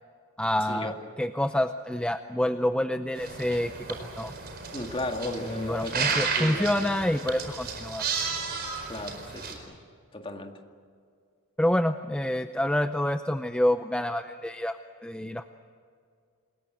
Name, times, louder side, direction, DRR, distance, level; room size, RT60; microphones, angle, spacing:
voice 1, 0.4-4.3 5.4-8.0 11.6-15.5, left 1 dB, 5° left, 8 dB, 0.6 m, -28 dB
sound 1, 3.1-9.5, right 5 dB, 45° right, 4.5 m, -33 dB
voice 2, 4.7-6.9 8.9-9.8 10.1-10.5, left 1 dB, 25° left, 4 dB, 2.0 m, -35 dB
28.0 x 21.5 x 7.9 m, 2.3 s
head